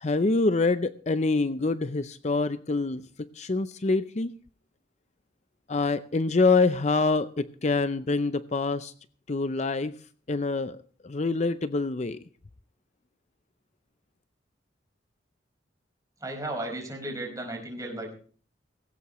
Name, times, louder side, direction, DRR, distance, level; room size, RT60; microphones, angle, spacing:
voice 1, 0.0-3.0 3.3-4.3 5.7-8.9 9.3-10.0 10.3-10.8 11.0-12.2, left 3 dB, 35° left, 13 dB, 0.5 m, -25 dB
voice 2, 16.2-18.1, right 1 dB, 20° right, 2 dB, 4.8 m, -35 dB
19.0 x 16.5 x 3.1 m, 0.42 s
head